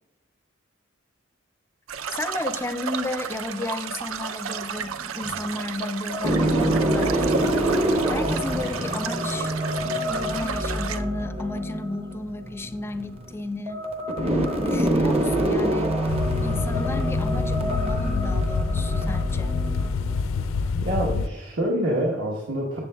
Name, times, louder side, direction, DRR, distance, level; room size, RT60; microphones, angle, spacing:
sound 1, 1.9-11.0, right 6 dB, 90° right, 0.4 m, -33 dB
voice 1, 2.1-7.3 8.1-9.5 10.1-13.8 14.6-16.0 16.4-19.6, left 2 dB, 10° left, 11 dB, 0.3 m, -33 dB
sound 2, 4.8-5.6 6.1-20.7, right 1 dB, 30° right, 0.8 m, -26 dB
sound 3, 16.1-21.3, left 4 dB, 80° left, 0.4 m, -26 dB
voice 2, 20.7-22.8, right 1 dB, 60° right, -3 dB, 1.2 m, -26 dB
13.0 x 7.5 x 2.3 m, 0.98 s
head